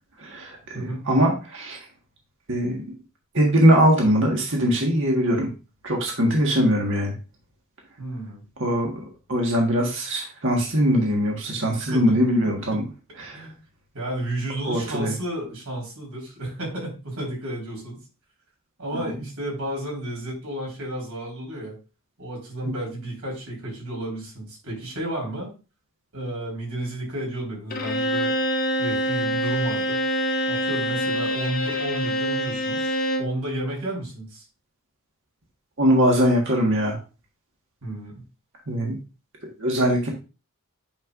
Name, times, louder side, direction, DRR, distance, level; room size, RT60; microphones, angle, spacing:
voice 1, 0.2-1.8 2.5-2.7 3.3-5.5 5.8-7.1 8.6-8.9 9.3-12.8 13.2-13.5 14.7-15.1 35.8-37.0 38.7-38.9 39.6-40.1, equal, 55° right, 0 dB, 1.6 m, -21 dB
voice 2, 0.7-1.0 8.0-8.4 11.9-12.2 12.7-12.8 13.3-13.6 13.9-18.0 18.8-21.8 22.2-25.5 26.1-28.3 28.8-30.0 30.5-34.4 37.8-38.2, right 1 dB, 75° right, -2 dB, 4.3 m, -32 dB
Bowed string instrument, 27.7-33.4, equal, 40° left, 1.2 m, -25 dB
9.0 x 5.4 x 2.5 m, 0.32 s
head